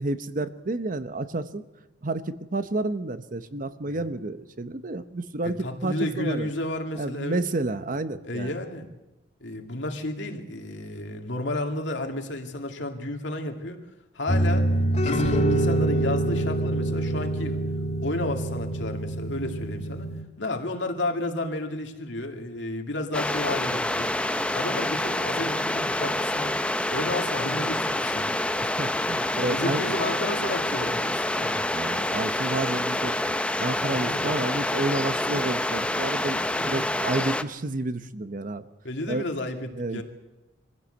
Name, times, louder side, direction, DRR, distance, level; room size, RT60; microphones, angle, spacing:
voice 1, 0.0-1.6 2.0-6.5 7.0-8.5 28.6-29.9 31.7-33.1 33.6-38.7 39.1-39.2 39.7-40.0, right 2 dB, 45° right, 12 dB, 0.9 m, -30 dB
voice 2, 5.4-7.4 8.2-8.9 9.4-13.8 14.1-14.7 15.0-17.6 18.0-20.1 20.4-24.1 24.5-26.6 26.9-28.4 29.4-31.6 33.9-34.4 36.6-36.8 38.8-40.0, left 1 dB, 75° left, 4 dB, 2.4 m, -32 dB
sound 1, 14.3-20.2, right 1 dB, 40° left, 2.6 m, -25 dB
sound 2, 23.1-37.4, left 1 dB, 5° left, 0.7 m, -27 dB
23.0 x 15.5 x 8.0 m, 1.1 s
head